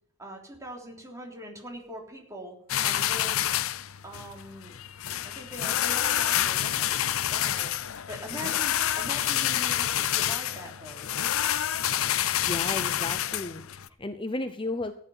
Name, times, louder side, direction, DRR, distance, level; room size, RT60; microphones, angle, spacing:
voice 1, 0.2-2.6 2.8-3.4 4.0-4.7 5.2-7.7 8.1-11.1, equal, 15° right, 0 dB, 3.4 m, -42 dB
sound 1, 2.7-13.9, left 11 dB, 80° left, 0.6 m, -28 dB
voice 2, 12.4-14.9, left 2 dB, 25° left, 8 dB, 0.7 m, -34 dB
15.0 x 9.4 x 5.6 m, 0.70 s
head